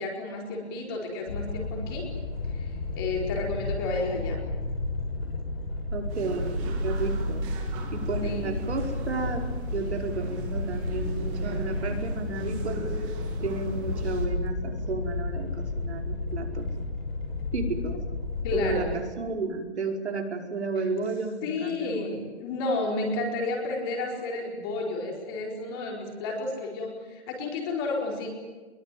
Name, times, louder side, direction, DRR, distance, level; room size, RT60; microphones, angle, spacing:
voice 1, 0.0-2.1 2.5-4.4 8.2-8.6 18.4-19.0 21.4-28.3, left 3 dB, 20° left, 0 dB, 4.5 m, -31 dB
sound 1, 1.3-19.0, left 2 dB, 60° left, 5.7 m, -32 dB
voice 2, 5.9-7.4 7.9-9.5 9.7-12.8 13.4-16.7 17.5-18.0 18.5-22.1, right 3 dB, 80° right, 2 dB, 5.3 m, -32 dB
sound 2, 6.1-14.3, right 3 dB, 15° right, 2.2 m, -41 dB
24.0 x 22.5 x 9.2 m, 1.3 s
hypercardioid pair, 175°, 33 cm